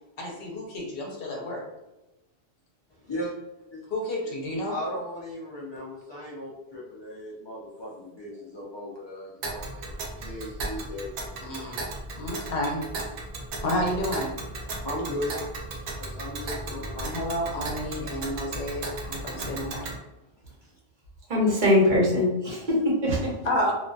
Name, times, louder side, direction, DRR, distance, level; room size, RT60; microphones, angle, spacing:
voice 1, 0.2-1.6 3.9-4.8 11.4-11.9 12.2-12.8 13.6-14.3 17.0-19.9 23.4-23.7, left 1 dB, 70° left, 0.8 m, -30 dB
voice 2, 3.0-3.3 3.7-3.8 4.7-11.1 12.2-12.3 14.8-15.4 16.0-17.1 20.6-20.7 23.6-23.7, left 1 dB, 45° left, 0.3 m, -37 dB
Tick, 9.4-20.0, right 2 dB, 85° right, 0.8 m, -36 dB
voice 3, 21.3-23.4, left 1 dB, 55° right, 0.8 m, -22 dB
2.5 x 2.3 x 2.2 m
omnidirectional pair, 1.0 m